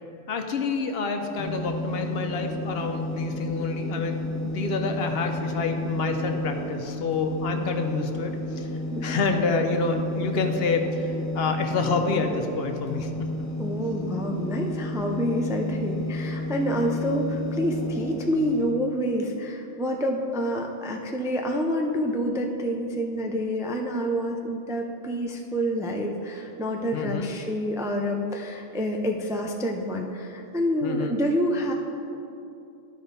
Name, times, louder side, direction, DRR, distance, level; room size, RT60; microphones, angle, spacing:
voice 1, 0.3-8.7 9.0-13.3 26.9-27.3 30.8-31.1, left 4 dB, 65° left, 5 dB, 0.9 m, -28 dB
sound 1, 1.4-18.6, left 1 dB, 50° left, 1.4 m, -31 dB
voice 2, 13.6-31.7, equal, 5° right, 2 dB, 0.3 m, -28 dB
12.5 x 5.1 x 4.0 m, 2.8 s
omnidirectional pair, 1.1 m